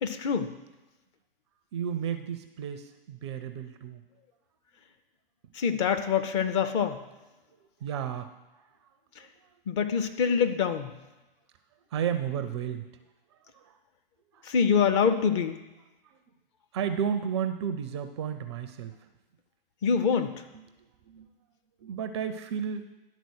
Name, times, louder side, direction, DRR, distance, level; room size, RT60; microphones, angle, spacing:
voice 1, 0.0-0.5 5.5-7.0 9.7-10.9 14.4-15.6 19.8-20.4, left 6 dB, 30° left, 7 dB, 0.6 m, -25 dB
voice 2, 1.7-4.0 7.8-8.7 11.9-12.9 13.5-13.8 14.3-14.5 16.1-16.2 16.7-19.0 20.5-20.6 21.1-21.3 21.8-22.9, right 8 dB, 30° right, 9 dB, 0.4 m, -33 dB
11.0 x 4.0 x 6.3 m, 1.1 s
figure-of-eight pair, 115°, 29 cm